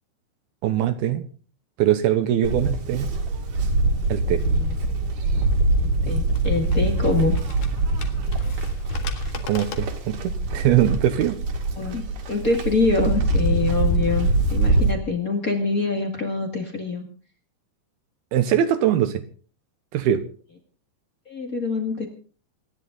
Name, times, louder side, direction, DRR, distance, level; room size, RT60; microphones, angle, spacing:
voice 1, 0.6-1.3 1.8-3.1 4.1-4.4 9.4-11.4 18.3-19.2 19.9-20.2, right 11 dB, 75° right, 10 dB, 2.5 m, -22 dB
Livestock farm animals working animals, 2.4-14.9, right 2 dB, 55° right, 3.4 m, -23 dB
voice 2, 4.4-4.9 5.8-7.3 11.8-17.0 21.2-22.1, left 3 dB, 40° left, 3 dB, 1.3 m, -25 dB
sound 1, 5.7-11.1, left 6 dB, 55° left, 2.5 m, -41 dB
27.0 x 10.5 x 3.9 m, 0.41 s
omnidirectional pair, 5.2 m